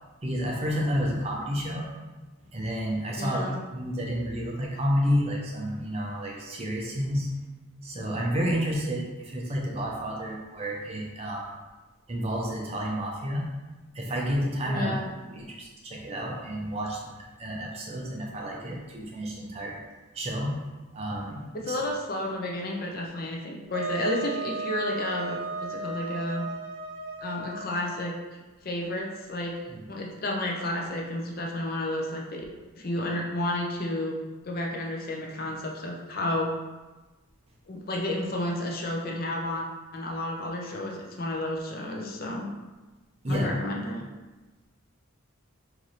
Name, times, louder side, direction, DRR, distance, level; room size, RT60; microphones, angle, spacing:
voice 1, 0.2-1.9 2.5-3.4 3.7-7.3 7.8-11.5 12.1-13.5 13.9-14.9 15.3-19.8 20.1-20.6 20.9-21.8 29.7-29.8 43.2-43.5, equal, 25° right, -1 dB, 0.5 m, -30 dB
voice 2, 3.1-3.6 14.7-15.1 21.5-26.5 27.2-29.5 29.9-32.4 32.7-34.2 34.4-36.5 37.7-39.6 39.9-42.5 43.3-44.0, left 1 dB, 40° left, 0 dB, 0.5 m, -31 dB
Wind instrument woodwind instrument, 23.7-28.1, right 3 dB, 45° right, 0.8 m, -35 dB
3.1 x 2.5 x 4.1 m, 1.2 s
head